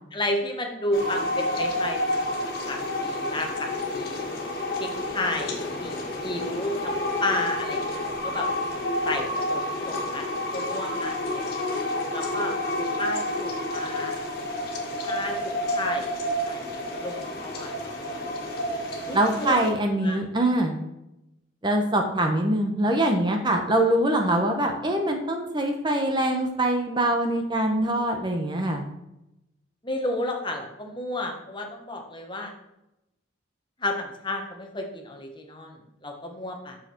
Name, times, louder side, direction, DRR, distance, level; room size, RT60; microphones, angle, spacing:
voice 1, 0.1-2.2 2.7-4.3 4.8-8.5 9.0-11.7 12.1-12.5 13.0-14.2 15.0-15.4 15.7-16.1 16.4-18.3 19.1-19.6 20.0-20.2 29.8-32.5 33.8-36.8, left 1 dB, 25° left, 3 dB, 1.2 m, -32 dB
sound 1, 0.9-19.7, left 1 dB, 50° left, 1.9 m, -29 dB
voice 2, 19.1-20.8 21.6-28.8, right 1 dB, 25° right, 3 dB, 0.9 m, -23 dB
8.8 x 6.6 x 4.4 m, 0.90 s
head